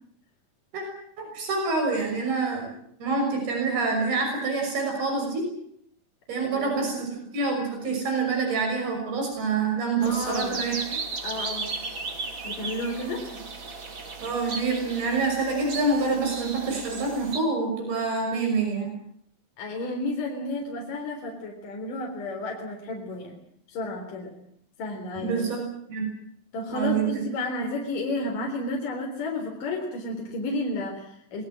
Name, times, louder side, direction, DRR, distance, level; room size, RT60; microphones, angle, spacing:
voice 1, 1.2-2.7 3.0-5.5 6.3-11.0 13.1-13.2 14.2-18.9 25.2-26.1 26.7-27.2, right 4 dB, 90° right, 2 dB, 8.0 m, -27 dB
voice 2, 6.4-6.9 10.0-10.6 11.2-11.7 12.4-13.2 19.6-23.4 23.7-24.3 24.8-25.4 26.5-31.4, left 2 dB, 60° left, 1 dB, 5.3 m, -32 dB
sound 1, 10.0-17.4, right 4 dB, 35° right, 3.2 m, -35 dB
27.0 x 20.0 x 7.7 m, 0.69 s
omnidirectional pair, 4.3 m